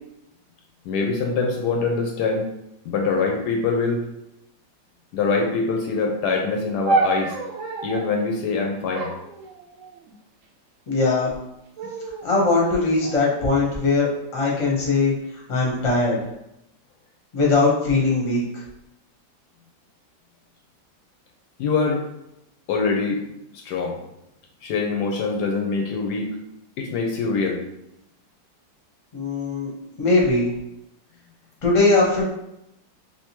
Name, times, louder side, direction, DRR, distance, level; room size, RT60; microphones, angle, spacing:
voice 1, 0.9-2.5 2.8-4.1 5.1-7.3 7.8-9.1 21.6-22.0 22.7-23.2 23.5-24.0 24.6-26.3 26.8-27.6, left 4 dB, 75° left, 2 dB, 1.1 m, -24 dB
sound 1, 6.9-8.1 8.9-10.1 10.9-11.4 11.8-12.3 13.0-14.0, right 3 dB, 75° right, 0.7 m, -28 dB
voice 2, 10.9-11.3 12.2-15.1 15.5-16.2 17.3-18.6 29.1-29.7 30.0-30.5 31.6-32.3, left 3 dB, 25° left, -4 dB, 0.7 m, -20 dB
3.5 x 2.8 x 2.9 m, 0.83 s
omnidirectional pair, 1.9 m